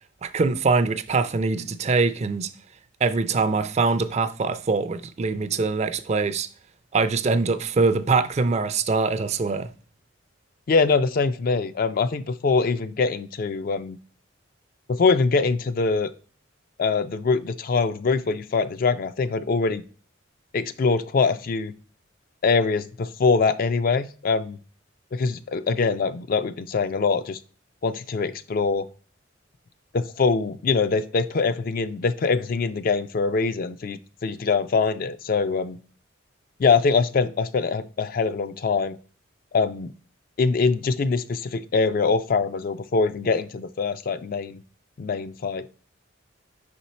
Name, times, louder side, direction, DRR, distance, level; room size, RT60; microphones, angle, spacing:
voice 1, 0.2-2.5 3.0-6.5 6.9-9.7, right 4 dB, 35° right, 0.4 m, -23 dB
voice 2, 10.7-14.0 14.9-16.1 16.8-19.8 20.5-21.7 22.4-24.6 25.1-27.4 27.8-28.9 29.9-35.8 36.6-39.0 39.5-39.9 40.4-44.6 45.0-45.7, left 4 dB, 45° left, 0.3 m, -23 dB
5.4 x 4.4 x 4.1 m
head